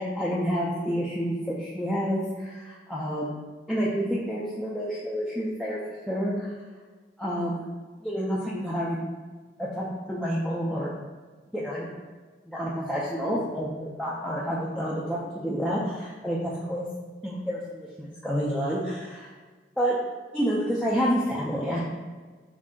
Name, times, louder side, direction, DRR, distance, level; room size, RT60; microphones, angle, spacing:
voice 1, 0.0-3.4 3.7-5.8 6.1-6.5 7.2-7.7 8.0-9.0 9.6-10.9 11.5-11.9 12.5-16.9 17.2-19.3 19.8-20.0 20.3-21.8, equal, 5° left, -8 dB, 0.4 m, -29 dB
5.2 x 2.5 x 3.6 m, 1.4 s
head